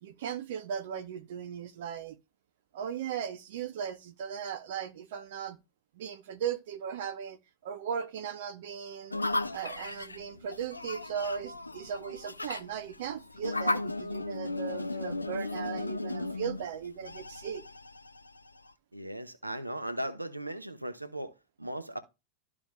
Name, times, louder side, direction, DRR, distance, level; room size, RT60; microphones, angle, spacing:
voice 1, 0.0-2.2 2.7-5.6 6.0-9.1 9.5-17.6, right 8 dB, 55° right, 0.8 m, -37 dB
sound 1, 9.1-18.7, left 2 dB, 85° left, 0.5 m, -36 dB
voice 2, 18.9-22.0, right 1 dB, 85° right, 1.0 m, -38 dB
13.0 x 4.8 x 2.2 m
figure-of-eight pair, 90°, 0 cm